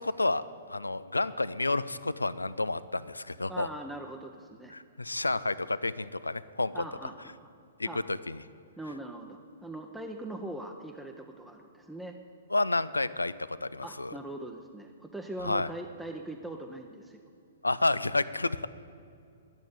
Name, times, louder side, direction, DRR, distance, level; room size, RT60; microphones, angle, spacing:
voice 1, 0.0-3.7 4.7-6.8 7.8-8.4 12.5-13.3 13.6-14.1 15.4-15.7 17.6-18.7, left 2 dB, 85° left, 16 dB, 0.4 m, -30 dB
voice 2, 3.5-4.7 6.7-7.5 7.8-8.0 8.8-12.2 13.8-17.2, right 1 dB, 5° right, 2 dB, 0.7 m, -41 dB
11.0 x 7.2 x 9.3 m, 2.4 s
figure-of-eight pair, 115°, 0 cm